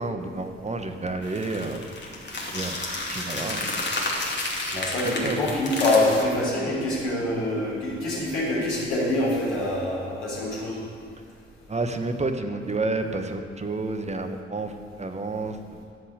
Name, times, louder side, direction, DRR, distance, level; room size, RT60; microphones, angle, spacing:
voice 1, 0.0-1.8 2.5-2.8 3.1-3.6 4.7-5.4 11.7-14.7 15.0-15.8, right 2 dB, 20° right, 6 dB, 1.3 m, -30 dB
sound 1, 1.2-6.2, left 2 dB, 35° left, 2.6 m, -31 dB
voice 2, 4.7-10.8, left 1 dB, 70° left, -6 dB, 3.5 m, -25 dB
13.5 x 5.6 x 8.2 m, 2.2 s
figure-of-eight pair, 40°, 31 cm